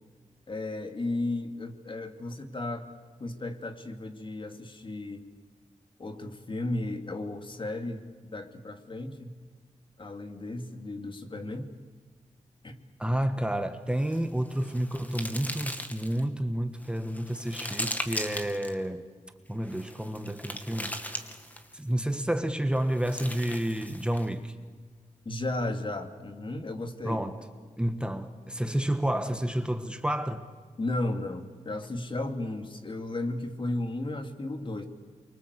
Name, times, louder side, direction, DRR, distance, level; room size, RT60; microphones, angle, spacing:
voice 1, 0.5-2.9 3.2-5.2 6.0-9.4 10.0-11.7 12.6-12.8 25.2-27.2 30.8-34.9, left 2 dB, 40° left, 2.7 m, -34 dB
voice 2, 13.0-19.1 19.5-21.0 21.7-24.6 27.0-27.4 27.8-30.4, right 1 dB, 5° right, 1.4 m, -30 dB
sound 1, 14.0-16.2 16.8-18.7 19.6-21.8 22.8-24.3, left 1 dB, 10° left, 2.4 m, -38 dB
28.5 x 24.5 x 8.3 m
wide cardioid pair, 95°, 13 cm